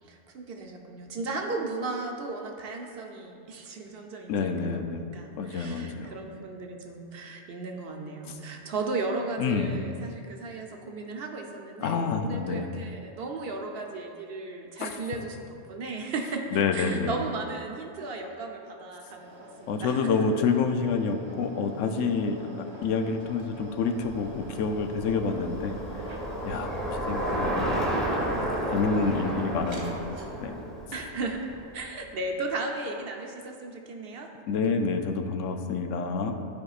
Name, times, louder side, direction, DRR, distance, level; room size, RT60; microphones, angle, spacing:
voice 1, 0.1-16.4 16.7-20.1 30.9-31.5 31.7-34.3, right 3 dB, 55° right, 2 dB, 0.9 m, -35 dB
voice 2, 4.3-5.0 5.4-6.1 9.4-9.7 11.8-12.7 14.8-15.0 16.5-17.1 19.7-26.1 26.5-28.0 28.7-30.1 30.4-30.6 34.5-36.4, left 5 dB, 80° left, 6 dB, 0.9 m, -28 dB
sound 1, 19.0-30.7, right 1 dB, 35° right, 0.5 m, -47 dB
Bicycle, 23.5-31.8, right 1 dB, ahead, 1.0 m, -32 dB
12.5 x 4.7 x 2.4 m, 2.5 s
omnidirectional pair, 1.3 m